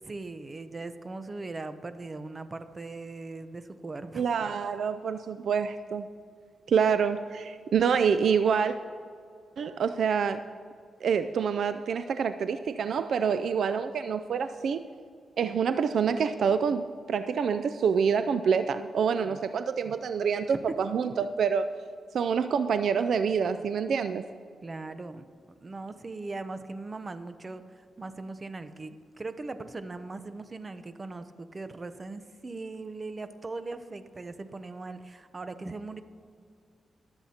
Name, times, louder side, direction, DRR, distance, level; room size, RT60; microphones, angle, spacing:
voice 1, 0.0-4.3 19.2-19.4 20.5-20.8 24.6-25.3 25.6-36.0, right 3 dB, 35° right, 11 dB, 0.7 m, -39 dB
voice 2, 4.2-6.1 6.7-8.8 9.6-10.4 11.0-14.8 15.4-21.7 22.1-24.2, right 6 dB, 75° right, 11 dB, 0.3 m, -27 dB
23.0 x 7.9 x 2.9 m, 2.2 s
cardioid pair, 80°, 0 cm